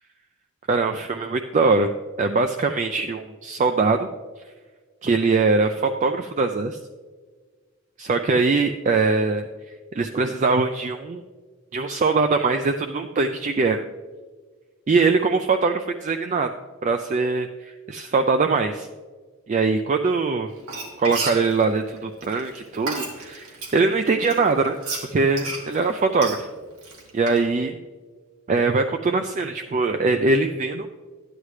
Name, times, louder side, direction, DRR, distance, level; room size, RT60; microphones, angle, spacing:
voice 1, 0.7-1.9 2.2-4.1 5.0-6.8 8.0-9.5 9.9-11.2 11.7-13.8 14.9-16.5 16.8-18.9 19.5-20.5 21.0-24.8 25.1-26.5 27.1-27.8 28.5-30.9, right 4 dB, 35° right, 6 dB, 0.3 m, -22 dB
Frying (food), 20.6-23.8 24.2-27.5, right 3 dB, 90° right, 2.0 m, -33 dB
12.5 x 9.7 x 3.2 m, 1.5 s
head